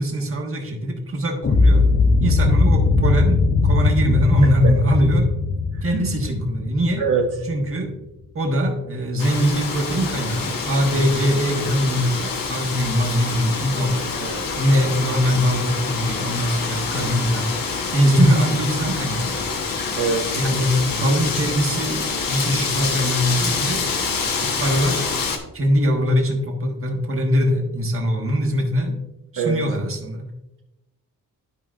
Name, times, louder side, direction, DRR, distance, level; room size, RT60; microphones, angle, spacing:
voice 1, 0.0-1.9 2.2-5.4 5.8-7.0 7.4-7.9 8.3-14.1 14.6-17.5 17.9-19.5 20.3-23.8 24.4-25.1 25.5-29.0 29.3-30.3, equal, 40° right, 2 dB, 1.3 m, -22 dB
sound 1, 1.4-7.5, left 3 dB, 35° left, 0.6 m, -19 dB
voice 2, 7.0-7.3 14.2-14.4 19.9-20.4 29.4-29.6, right 5 dB, 65° right, 1 dB, 0.8 m, -22 dB
Wind, 9.2-25.4, left 4 dB, 80° left, 1.2 m, -26 dB
12.0 x 5.0 x 2.5 m, 0.93 s
wide cardioid pair, 150°, 34 cm